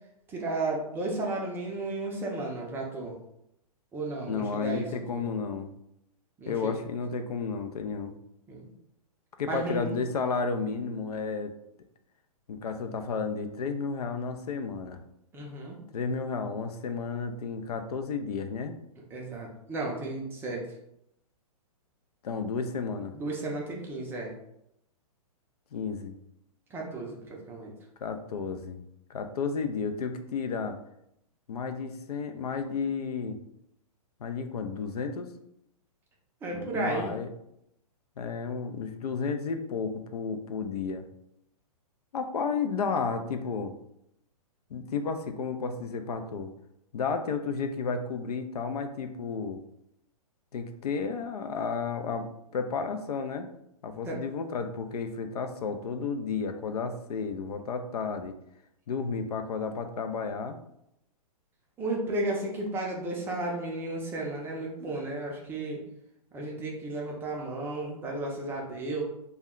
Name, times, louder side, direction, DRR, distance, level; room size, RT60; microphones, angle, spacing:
voice 1, 0.3-3.2 3.9-5.2 6.4-6.7 8.5-8.7 9.5-10.0 15.3-15.8 19.1-20.7 23.1-24.3 26.7-27.7 36.4-37.1 54.0-54.2 61.8-65.8 66.3-69.0, right 2 dB, 10° right, -1 dB, 0.4 m, -33 dB
voice 2, 4.3-5.7 6.5-8.2 9.4-11.5 12.5-15.0 15.9-18.8 22.2-23.1 25.7-26.2 28.0-28.8 29.1-30.8 31.5-33.4 34.2-35.3 36.5-37.3 38.2-41.1 42.1-43.7 44.7-46.5 46.9-49.6 50.5-53.5 53.8-58.3 58.9-60.6, left 5 dB, 85° left, 7 dB, 0.4 m, -32 dB
2.2 x 2.1 x 3.5 m, 0.79 s
hypercardioid pair, 140°, 19 cm